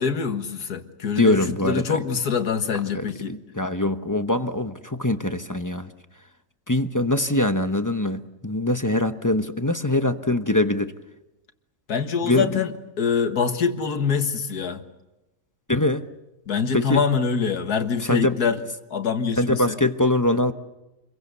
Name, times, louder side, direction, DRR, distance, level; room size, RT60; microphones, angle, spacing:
voice 1, 0.0-1.4 1.6-3.3 11.9-12.7 13.0-14.8 16.5-18.6 18.9-19.7, left 6 dB, 85° left, 7 dB, 2.1 m, -24 dB
voice 2, 1.2-2.0 2.9-5.9 6.7-10.9 12.2-12.5 15.7-16.0 16.7-17.0 18.0-18.4 19.4-20.5, left 1 dB, 15° left, 8 dB, 0.8 m, -23 dB
29.0 x 23.0 x 6.8 m, 0.97 s
omnidirectional pair, 1.6 m